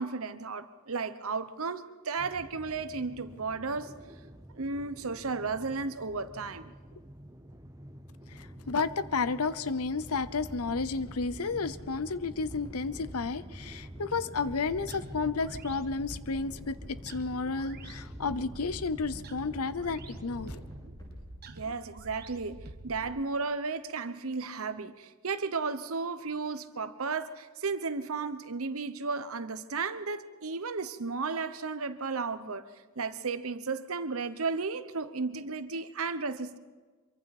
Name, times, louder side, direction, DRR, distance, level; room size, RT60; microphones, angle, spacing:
voice 1, 0.0-3.9 4.5-6.7 21.5-22.6 22.8-32.7 33.0-36.6, right 4 dB, 75° right, 12 dB, 1.0 m, -34 dB
sound 1, 2.2-20.9, equal, 15° right, 0.9 m, -48 dB
voice 2, 8.3-20.6, left 4 dB, 90° left, 15 dB, 0.8 m, -32 dB
sound 2, 10.1-22.3 22.8-22.9, equal, 20° left, 5.7 m, -49 dB
sound 3, 14.5-23.2, right 2 dB, 45° right, 1.4 m, -48 dB
26.0 x 23.5 x 4.3 m, 1.4 s
head